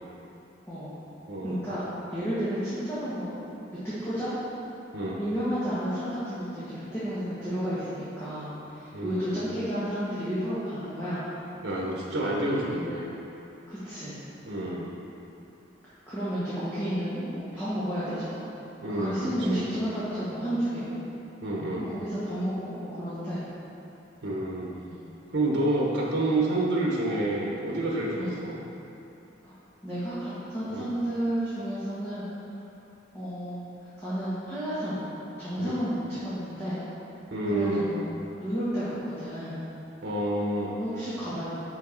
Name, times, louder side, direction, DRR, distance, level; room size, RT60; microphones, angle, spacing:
voice 1, 1.4-3.3 3.8-4.3 5.2-11.2 13.7-14.2 16.1-18.4 19.0-21.0 21.8-23.4 24.9-25.2 28.2-28.4 29.4-29.5 29.8-32.3 33.1-33.6 34.0-36.8 37.5-39.6 40.8-41.5, equal, 15° left, -13 dB, 1.4 m, -32 dB
voice 2, 8.9-9.4 11.6-13.1 14.5-14.8 18.8-19.6 21.4-21.9 24.2-24.7 25.3-28.6 30.7-30.9 35.6-35.8 37.3-37.8 40.0-40.7, right 1 dB, 80° right, -3 dB, 1.1 m, -28 dB
6.2 x 5.9 x 4.5 m, 2.8 s
head